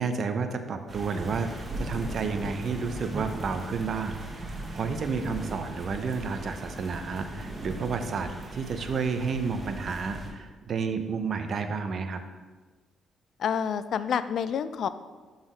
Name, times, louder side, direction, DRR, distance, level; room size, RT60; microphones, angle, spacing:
voice 1, 0.0-12.2, right 5 dB, 55° right, 7 dB, 0.6 m, -31 dB
sound 1, 0.9-10.3, right 1 dB, 30° right, 1.4 m, -38 dB
voice 2, 13.4-14.9, left 7 dB, 65° left, 13 dB, 0.3 m, -28 dB
6.1 x 4.0 x 5.1 m, 1.4 s
cardioid pair, 90°, 0 cm